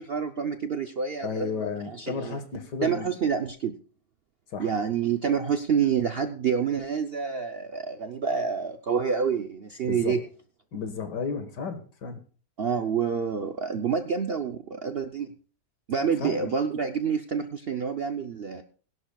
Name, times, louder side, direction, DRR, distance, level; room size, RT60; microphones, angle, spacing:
voice 1, 0.0-1.5 2.0-2.4 2.8-3.7 4.6-10.2 12.6-15.3 15.9-18.6, right 6 dB, 60° right, 8 dB, 0.6 m, -28 dB
voice 2, 1.2-3.3 4.5-4.8 9.8-10.3 10.7-12.2 16.0-16.6, left 5 dB, 75° left, 8 dB, 2.1 m, -34 dB
21.0 x 11.0 x 2.3 m, 0.41 s
omnidirectional pair, 1.8 m